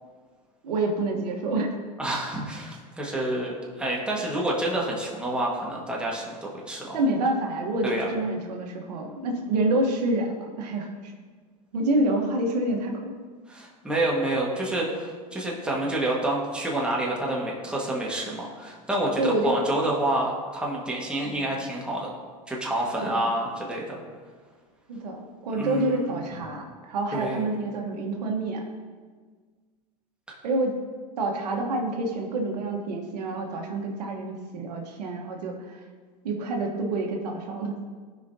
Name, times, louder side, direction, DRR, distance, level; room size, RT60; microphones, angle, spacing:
voice 1, 0.6-1.8 6.9-11.1 11.7-13.1 19.2-19.5 21.3-21.4 23.0-23.3 24.9-28.6 30.4-30.8 31.2-35.8 36.2-37.9, right 2 dB, 85° right, 2 dB, 1.2 m, -28 dB
voice 2, 2.0-7.0 7.8-8.1 13.5-22.1 22.5-24.0 25.5-26.2 27.1-27.5 30.3-30.4, right 1 dB, 5° right, -4 dB, 1.6 m, -28 dB
14.0 x 5.1 x 2.8 m, 1.5 s
hypercardioid pair, 110°, 20 cm